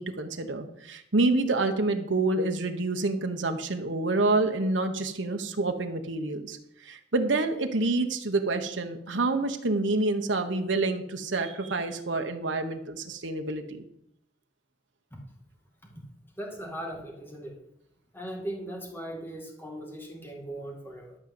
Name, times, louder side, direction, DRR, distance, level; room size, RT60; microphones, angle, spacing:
voice 1, 0.0-6.6 6.8-13.9, right 2 dB, 75° right, 5 dB, 1.2 m, -27 dB
voice 2, 16.4-17.6 18.1-21.2, right 1 dB, 10° left, 1 dB, 2.3 m, -38 dB
12.5 x 5.2 x 7.8 m, 0.75 s
head